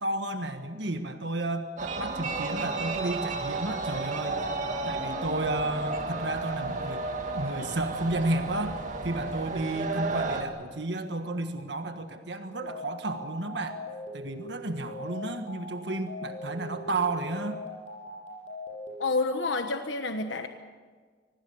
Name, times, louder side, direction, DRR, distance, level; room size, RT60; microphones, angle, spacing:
voice 1, 0.0-4.5 4.8-7.1 7.3-13.8 14.1-17.6, right 2 dB, 75° right, 7 dB, 1.5 m, -32 dB
sound 1, 1.8-10.4, right 3 dB, 45° right, 2.3 m, -32 dB
sound 2, 12.5-19.0, left 2 dB, 40° left, 7.3 m, -41 dB
voice 2, 19.0-20.5, left 3 dB, 90° left, 6 dB, 1.3 m, -28 dB
24.5 x 19.0 x 7.1 m, 1.5 s
head